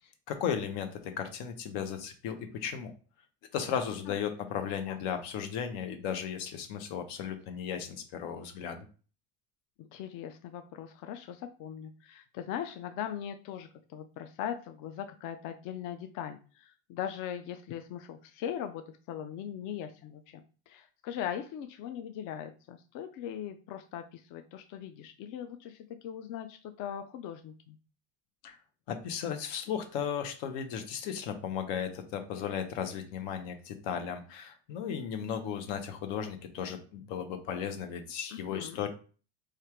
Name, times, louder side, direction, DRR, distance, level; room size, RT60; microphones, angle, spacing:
voice 1, 0.3-0.9 1.2-2.9 3.5-8.8 28.4-28.6 28.9-38.9, left 8 dB, 85° left, 7 dB, 1.0 m, -35 dB
voice 2, 9.8-27.8 38.3-38.8, left 9 dB, 55° left, 7 dB, 0.4 m, -40 dB
3.3 x 2.4 x 4.4 m, 0.37 s
cardioid pair, 145°, 40 cm